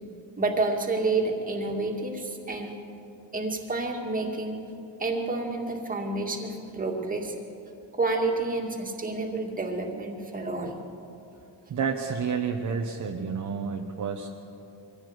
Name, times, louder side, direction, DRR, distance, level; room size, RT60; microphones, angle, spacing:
voice 1, 0.4-2.8 3.3-4.6 5.0-7.4 7.9-10.7, right 3 dB, 20° right, 1 dB, 2.2 m, -29 dB
voice 2, 11.7-14.3, right 6 dB, 40° right, 2 dB, 1.1 m, -30 dB
23.0 x 15.5 x 8.1 m, 2.8 s
cardioid pair, 160°, 43 cm